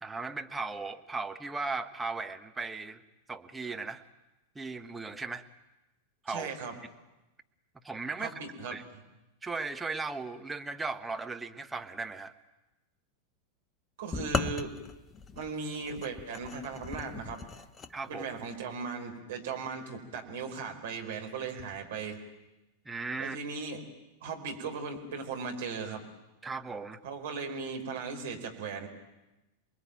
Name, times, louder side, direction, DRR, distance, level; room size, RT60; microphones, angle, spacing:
voice 1, 0.0-3.0 3.3-4.0 4.5-5.4 6.2-6.5 7.8-8.3 8.7-8.8 9.4-12.3 17.9-18.2 22.8-23.4 26.4-27.0, right 4 dB, 10° right, 6 dB, 1.4 m, -37 dB
voice 2, 6.3-6.7 8.2-8.7 14.0-14.7 15.4-17.4 18.1-22.2 23.2-23.8 24.2-26.0 27.0-28.9, right 5 dB, 55° right, 3 dB, 4.8 m, -37 dB
sound 1, 14.1-17.9, left 5 dB, 20° left, 1.0 m, -37 dB
28.5 x 21.5 x 9.2 m, 1.0 s
figure-of-eight pair, 90°, 0 cm